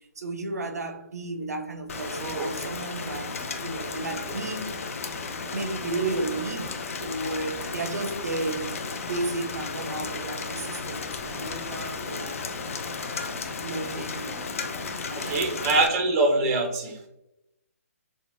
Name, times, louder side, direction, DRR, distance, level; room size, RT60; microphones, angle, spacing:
voice 1, 0.2-4.9 5.5-12.5 13.6-14.5 15.1-15.8, right 2 dB, 80° right, 0.4 m, -33 dB
Rain, 1.9-15.9, left 4 dB, 60° left, 0.3 m, -34 dB
voice 2, 2.2-2.5 15.2-17.1, right 2 dB, 25° right, 0.4 m, -24 dB
3.0 x 2.0 x 2.5 m
hypercardioid pair, 145°, 8 cm